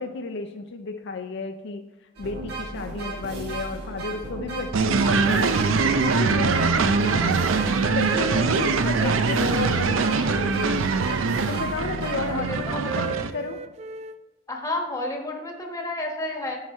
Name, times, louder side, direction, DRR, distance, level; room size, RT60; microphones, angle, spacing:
voice 1, 0.0-1.8 2.2-5.6 6.0-7.4 7.8-10.9 11.5-13.6, left 4 dB, 60° left, 6 dB, 0.5 m, -32 dB
sound 1, 2.2-12.8, right 2 dB, 55° right, 1.4 m, -35 dB
sound 2, 4.7-13.3, right 4 dB, 90° right, 0.5 m, -23 dB
Wind instrument woodwind instrument, 7.2-10.4 10.8-14.2, right 6 dB, 35° right, 0.3 m, -36 dB
voice 2, 8.1-9.1 12.3-13.1 14.5-16.6, left 1 dB, 15° left, 2 dB, 1.2 m, -32 dB
9.5 x 4.8 x 4.3 m, 1.1 s
head